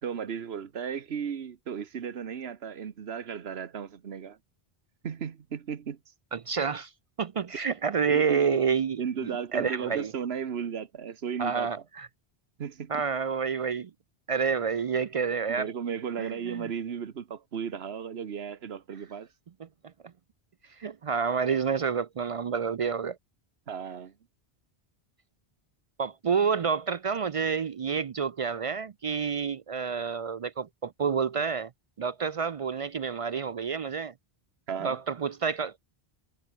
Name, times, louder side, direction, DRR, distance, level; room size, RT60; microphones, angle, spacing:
voice 1, 0.0-4.4 5.0-6.0 8.1-8.6 9.0-11.7 12.6-13.0 15.5-19.3 23.7-24.1 34.7-35.0, right 7 dB, 75° right, 1.3 m, -35 dB
voice 2, 6.3-6.9 7.2-10.1 11.4-12.1 12.9-13.9 14.3-15.7 16.2-16.7 19.6-19.7 20.8-23.2 26.0-31.7 32.0-34.1 34.8-35.9, right 6 dB, 55° right, 0.4 m, -29 dB
omnidirectional pair, 1.1 m